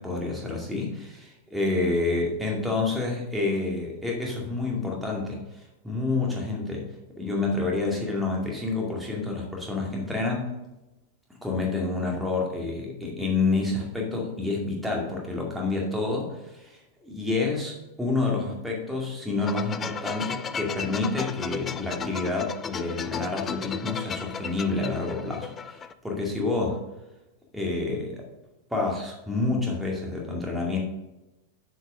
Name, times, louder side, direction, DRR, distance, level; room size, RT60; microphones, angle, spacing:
voice 1, 0.0-6.9 7.2-10.5 11.4-26.8 27.5-28.2 28.7-30.8, left 3 dB, 5° right, -1 dB, 2.2 m, -28 dB
sound 1, 19.4-25.9, left 7 dB, 20° left, 0.4 m, -35 dB
9.0 x 5.1 x 5.1 m, 0.97 s
figure-of-eight pair, 90°, 0 cm